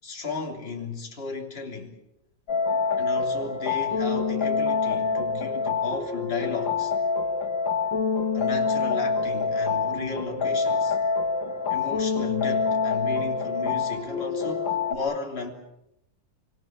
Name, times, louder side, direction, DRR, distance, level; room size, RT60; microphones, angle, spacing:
voice 1, 0.0-1.9 3.0-6.9 8.3-11.0 11.7-15.5, left 4 dB, 30° left, 3.5 m, -34 dB
sound 1, 2.5-15.0, left 5 dB, 90° left, 2.8 m, -26 dB
26.0 x 25.5 x 7.4 m
omnidirectional pair, 2.0 m